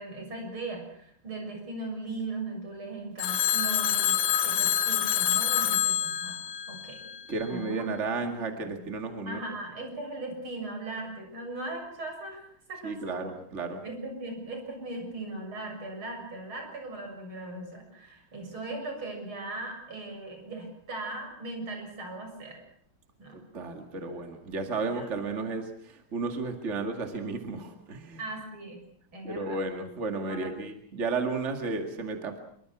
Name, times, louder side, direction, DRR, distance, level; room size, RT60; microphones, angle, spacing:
voice 1, 0.0-6.4 6.7-7.1 7.4-8.4 8.6-8.9 9.3-13.3 13.8-22.6 23.2-23.4 24.0-24.1 24.8-25.1 28.2-28.8 29.1-29.6 30.2-30.5, right 2 dB, 80° right, 3 dB, 7.8 m, -39 dB
Telephone, 3.2-7.4, left 10 dB, 85° left, 2.0 m, -27 dB
voice 2, 7.3-9.4 12.8-13.8 23.3-28.2 29.2-32.4, right 3 dB, 35° right, 5 dB, 2.4 m, -33 dB
26.0 x 23.5 x 6.1 m, 0.65 s
omnidirectional pair, 2.3 m